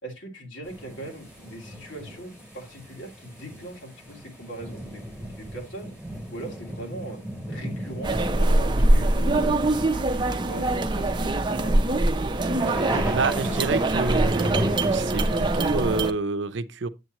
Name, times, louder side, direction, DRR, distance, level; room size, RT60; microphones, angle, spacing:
voice 1, 0.0-5.9 6.3-7.2 7.5-9.6 9.9-11.8, right 1 dB, 85° left, 2.7 m, -40 dB
sound 1, 0.6-16.0, equal, 10° left, 4.7 m, -36 dB
sound 2, 8.0-16.1, right 2 dB, 25° right, 0.6 m, -23 dB
voice 2, 13.1-14.6 14.9-16.9, right 3 dB, 80° right, 0.6 m, -28 dB
7.9 x 7.7 x 3.0 m
head